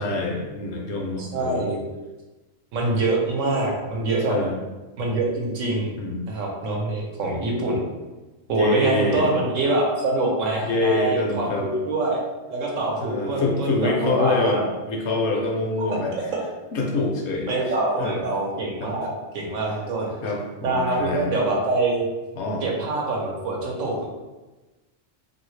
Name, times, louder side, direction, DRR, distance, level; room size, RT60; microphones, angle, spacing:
voice 1, 0.0-1.7 4.3-4.5 6.0-6.2 8.5-9.3 10.6-11.7 12.8-16.1 16.7-18.3 18.8-18.9 20.2-21.3 22.4-22.6, left 2 dB, 65° left, 0 dB, 0.8 m, -26 dB
voice 2, 1.2-1.8 2.7-4.3 5.0-5.9 6.3-7.8 8.5-12.2 12.5-14.6 15.8-16.4 17.5-20.1 20.6-22.1 22.6-24.1, right 2 dB, 80° right, -1 dB, 1.1 m, -25 dB
2.7 x 2.7 x 3.1 m, 1.2 s
omnidirectional pair, 1.3 m